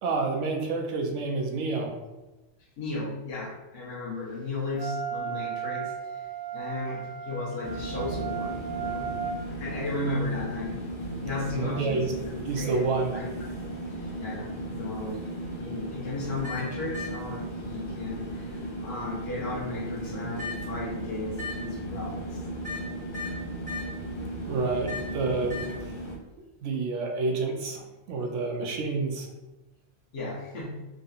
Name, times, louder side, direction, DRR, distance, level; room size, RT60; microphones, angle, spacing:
voice 1, 0.0-1.9 11.5-12.1 12.5-13.2 24.5-25.6 26.6-29.3, right 3 dB, 85° right, 2 dB, 0.9 m, -28 dB
voice 2, 2.8-6.2 6.5-9.2 9.5-10.9 11.2-13.6 14.0-15.3 15.6-22.4 24.5-24.6 30.1-30.9, left 2 dB, 60° left, -6 dB, 1.1 m, -35 dB
Wind instrument woodwind instrument, 4.8-9.4, right 8 dB, 70° right, 0.3 m, -35 dB
sound 1, 7.6-26.2, right 1 dB, 35° left, 0.5 m, -36 dB
3.7 x 2.7 x 2.4 m, 1.1 s
omnidirectional pair, 1.2 m